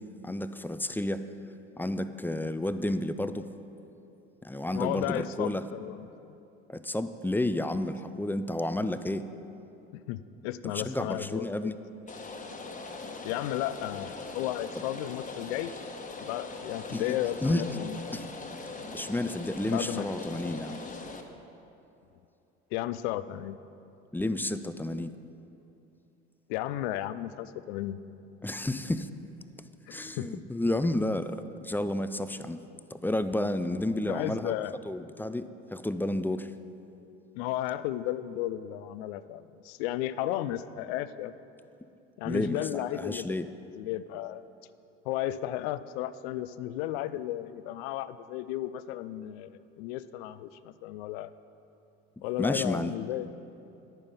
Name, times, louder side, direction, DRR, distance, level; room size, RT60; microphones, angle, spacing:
voice 1, 0.2-1.3 1.8-3.5 4.4-5.6 6.7-9.3 10.7-11.8 16.9-17.2 17.4-17.6 18.1-18.3 18.9-20.8 24.1-25.1 28.4-29.1 29.9-32.6 32.9-34.5 34.9-36.5 42.2-43.5 52.4-52.9, left 1 dB, 5° left, 11 dB, 0.5 m, -31 dB
voice 2, 4.7-6.1 9.9-11.7 13.2-15.7 16.2-18.2 19.6-20.5 22.7-23.6 26.5-28.0 29.9-30.3 34.1-34.7 37.3-41.3 42.2-43.4 43.7-44.4 45.0-51.3 52.2-53.3, left 13 dB, 75° left, 14 dB, 0.5 m, -34 dB
Rain, 12.1-21.2, left 3 dB, 25° left, 1.3 m, -41 dB
10.5 x 9.0 x 5.5 m, 2.8 s
hypercardioid pair, 65°, 32 cm